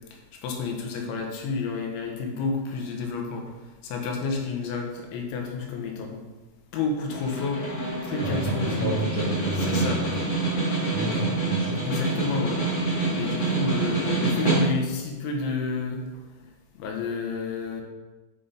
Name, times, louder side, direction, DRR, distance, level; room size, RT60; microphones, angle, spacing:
voice 1, 0.4-3.5 3.8-6.2 6.7-9.0 9.6-10.1 11.9-12.6 13.2-16.0 16.8-17.8, left 4 dB, 85° left, 1 dB, 3.5 m, -30 dB
Snare drum, 7.1-15.0, right 2 dB, 50° left, 1.4 m, -26 dB
voice 2, 8.2-10.2 10.9-11.8, right 1 dB, 60° right, -5 dB, 2.1 m, -31 dB
7.8 x 5.6 x 5.1 m, 1.2 s
omnidirectional pair, 5.3 m